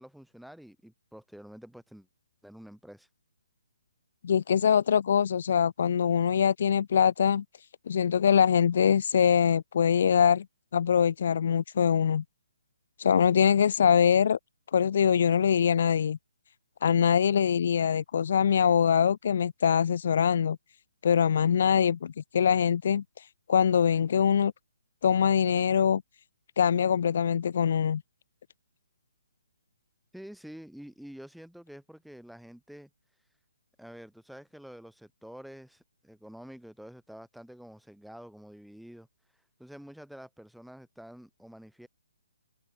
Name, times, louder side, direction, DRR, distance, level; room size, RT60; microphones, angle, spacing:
voice 1, 0.0-2.1 2.4-3.1 30.1-32.9 33.8-39.1 39.6-41.9, equal, ahead, 6.2 m, -48 dB
voice 2, 4.2-7.4 7.9-10.5 10.7-12.2 13.0-14.4 14.7-16.2 16.8-20.6 21.0-24.5 25.0-26.0 26.6-28.0, left 8 dB, 50° left, 0.5 m, -23 dB
hypercardioid pair, 165°, 0 cm